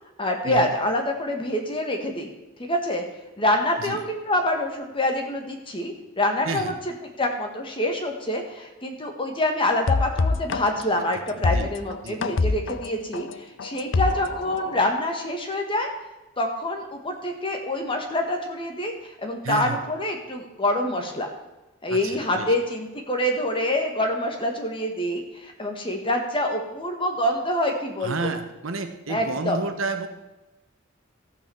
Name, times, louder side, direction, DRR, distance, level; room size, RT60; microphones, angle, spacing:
voice 1, 0.2-2.3 2.6-3.0 3.4-15.9 16.4-21.3 21.8-28.3 29.1-29.6, left 1 dB, 25° left, 3 dB, 1.6 m, -26 dB
voice 2, 6.4-6.8 11.4-11.7 12.0-12.5 19.4-19.8 21.9-22.5 28.0-30.1, right 3 dB, 80° right, 8 dB, 1.1 m, -31 dB
sound 1, 9.9-14.8, left 3 dB, 65° left, 0.6 m, -25 dB
14.0 x 5.9 x 7.1 m, 1.0 s
head